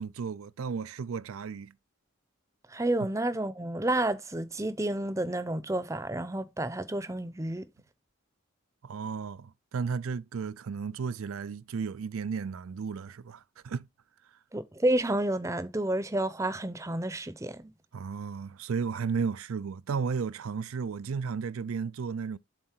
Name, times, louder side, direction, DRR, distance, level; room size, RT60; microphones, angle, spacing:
voice 1, 0.0-1.7 8.8-13.9 17.9-22.4, right 5 dB, 85° right, 0.4 m, -34 dB
voice 2, 2.7-7.7 14.5-17.7, right 1 dB, 15° right, 0.6 m, -30 dB
7.5 x 3.7 x 4.4 m
head